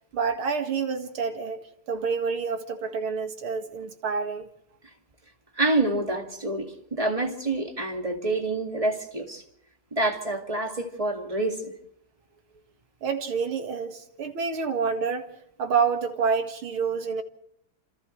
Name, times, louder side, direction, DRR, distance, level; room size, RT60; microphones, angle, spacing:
voice 1, 0.1-1.6 1.9-4.5 13.0-15.3 15.6-17.2, right 5 dB, 75° right, 2.7 m, -28 dB
voice 2, 5.6-9.4 9.9-11.7, right 2 dB, 15° right, 2.3 m, -27 dB
30.0 x 27.0 x 3.3 m
omnidirectional pair, 2.4 m